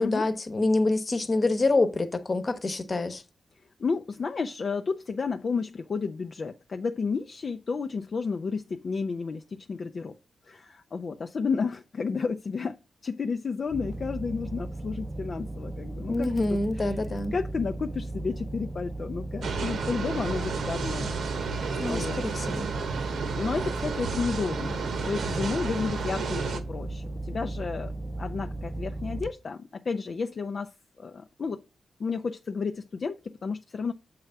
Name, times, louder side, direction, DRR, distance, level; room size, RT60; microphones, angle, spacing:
voice 1, 0.0-3.2 16.1-17.3 21.8-22.7, left 2 dB, 40° left, 0.9 m, -26 dB
voice 2, 3.8-10.1 10.5-21.1 21.6-22.2 23.3-27.9 28.2-30.7 31.0-31.6 32.0-33.9, left 5 dB, 55° left, 0.4 m, -32 dB
sound 1, 13.7-29.3, right 2 dB, 15° right, 0.5 m, -36 dB
sound 2, 19.4-26.6, right 5 dB, 85° right, 1.0 m, -32 dB
7.6 x 3.4 x 5.5 m
cardioid pair, 90°, 0 cm